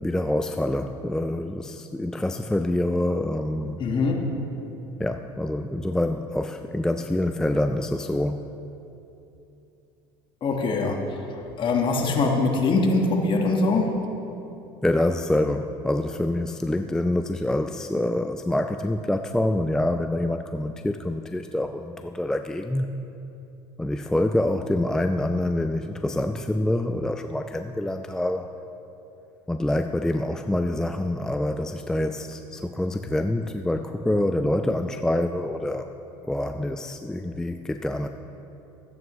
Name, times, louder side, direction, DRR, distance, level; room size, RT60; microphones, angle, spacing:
voice 1, 0.0-3.8 5.0-8.5 14.8-22.9 23.8-28.5 29.5-35.9 36.2-38.1, left 1 dB, 5° left, 7 dB, 0.3 m, -26 dB
voice 2, 3.8-4.2 10.4-11.0 11.6-13.9, left 3 dB, 40° left, 2 dB, 1.5 m, -22 dB
14.0 x 9.1 x 3.1 m, 2.9 s
supercardioid pair, 90°, 12 cm